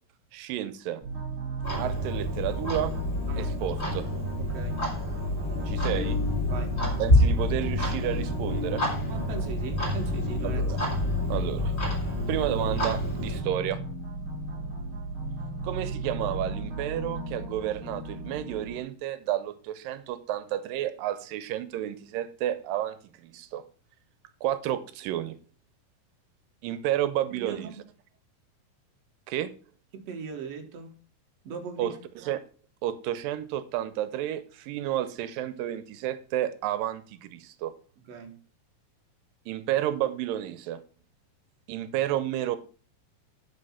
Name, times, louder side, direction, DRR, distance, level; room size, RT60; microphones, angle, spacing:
voice 1, 0.3-1.0 1.8-2.9 3.4-4.1 5.7-6.2 7.0-8.8 10.4-10.8 11.3-11.8 12.3-13.8 15.6-23.6 24.4-25.4 26.6-27.7 29.3-29.5 31.8-32.4 32.8-37.7 39.5-40.8 41.7-42.6, right 12 dB, 90° right, 2.3 m, -31 dB
sound 1, 1.0-18.8, right 2 dB, 40° right, 3.1 m, -35 dB
Clock, 1.6-13.4, left 2 dB, 25° left, 3.4 m, -28 dB
voice 2, 4.4-4.9 6.5-7.0 9.1-10.6 27.4-27.8 29.9-31.0 31.4-32.0 38.1-38.4, right 6 dB, 55° right, 2.2 m, -39 dB
9.8 x 5.4 x 5.7 m
omnidirectional pair, 4.0 m